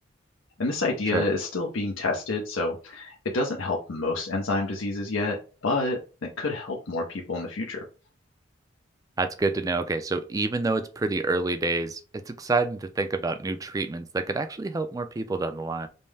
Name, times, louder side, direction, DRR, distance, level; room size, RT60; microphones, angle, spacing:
voice 1, 0.6-7.8, left 2 dB, 85° left, 0.7 m, -28 dB
voice 2, 9.2-15.9, right 3 dB, 20° right, 0.3 m, -28 dB
5.3 x 2.1 x 3.3 m
head